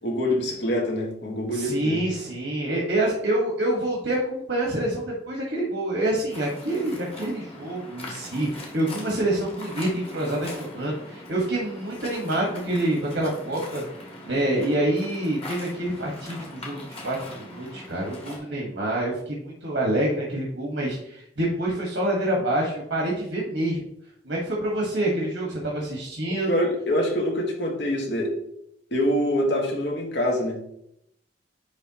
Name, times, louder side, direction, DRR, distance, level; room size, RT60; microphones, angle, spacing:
voice 1, 0.0-2.0 26.3-28.3 28.9-30.6, left 1 dB, 65° left, 0 dB, 1.5 m, -25 dB
voice 2, 1.5-13.8 14.2-23.8 24.2-26.6, right 1 dB, 80° right, -3 dB, 1.4 m, -27 dB
Waves surf, 6.3-18.4, left 1 dB, 30° left, 1.5 m, -41 dB
9.8 x 3.4 x 2.9 m, 0.75 s
head